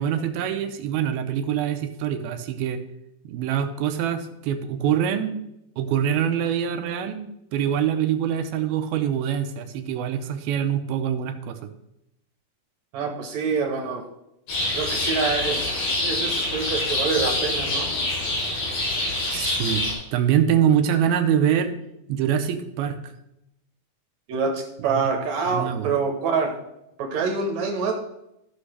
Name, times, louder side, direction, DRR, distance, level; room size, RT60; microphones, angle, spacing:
voice 1, 0.0-2.8 3.3-5.3 5.8-7.2 7.5-11.6 19.3-19.8 20.1-21.7 22.1-23.0 24.9-25.1 25.5-25.9, right 9 dB, 90° right, 7 dB, 2.6 m, -24 dB
voice 2, 12.9-14.1 14.7-15.6 16.0-17.9 24.3-26.5 27.0-27.9, right 5 dB, 65° right, 3 dB, 2.0 m, -26 dB
sound 1, 14.5-19.9, left 2 dB, 70° left, 5.3 m, -26 dB
14.5 x 6.2 x 3.3 m, 0.83 s
omnidirectional pair, 4.3 m